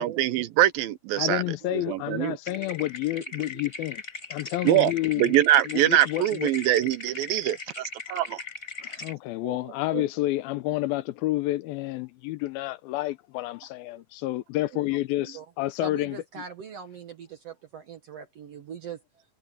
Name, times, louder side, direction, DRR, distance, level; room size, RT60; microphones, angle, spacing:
voice 1, 0.0-1.4 1.7-2.4 4.6-4.9 5.2-8.4 9.4-9.5 9.9-10.0, right 13 dB, 80° right, 2.5 m, -23 dB
voice 2, 1.2-4.0 4.3-5.3 5.7-6.5 8.8-16.2, left 17 dB, 80° left, 2.5 m, -29 dB
sound 1, 2.5-9.1, left 3 dB, 15° left, 4.8 m, -39 dB
voice 3, 15.8-19.0, right 7 dB, 60° right, 1.7 m, -41 dB
omnidirectional pair, 4.4 m